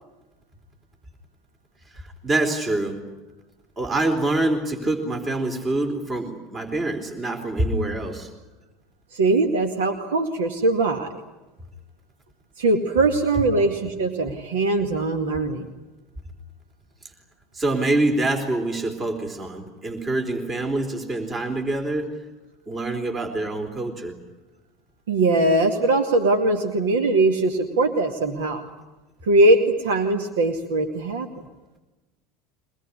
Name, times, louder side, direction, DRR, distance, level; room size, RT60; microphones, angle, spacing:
voice 1, 2.2-3.0 3.8-8.3 17.5-22.1 22.7-24.1, right 2 dB, 30° right, 5 dB, 4.1 m, -25 dB
voice 2, 9.1-11.2 12.6-15.6 25.1-28.6 29.2-31.3, right 2 dB, 75° right, 5 dB, 2.1 m, -21 dB
24.5 x 20.0 x 9.9 m, 1.1 s
hypercardioid pair, 75°, 0 cm